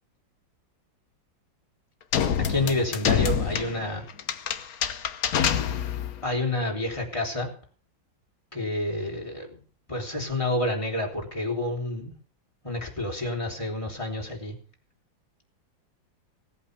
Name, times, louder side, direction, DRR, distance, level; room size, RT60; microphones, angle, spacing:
sound 1, 2.1-6.2, left 8 dB, 55° left, 1.3 m, -26 dB
voice 1, 2.5-4.0 6.2-7.5 8.5-9.6 9.9-12.1 12.6-14.5, left 1 dB, 15° left, -1 dB, 4.0 m, -29 dB
18.0 x 8.4 x 6.9 m, 0.43 s
omnidirectional pair, 2.0 m